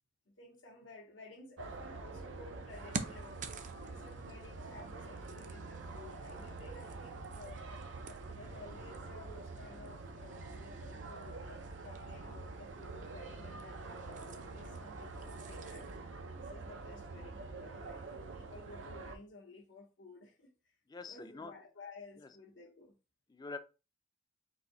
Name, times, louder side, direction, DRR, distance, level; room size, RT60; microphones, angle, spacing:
voice 1, 0.3-3.3 3.8-7.7 8.3-15.9 16.4-20.8 21.1-22.9, left 3 dB, 90° left, 0.9 m, -54 dB
sound 1, 1.6-19.2, right 3 dB, 85° right, 0.6 m, -46 dB
sound 2, 2.7-16.0, right 4 dB, 40° right, 0.5 m, -50 dB
voice 2, 20.9-21.5 22.2-22.3 23.3-23.6, left 3 dB, 20° left, 0.4 m, -45 dB
4.1 x 2.6 x 3.8 m
head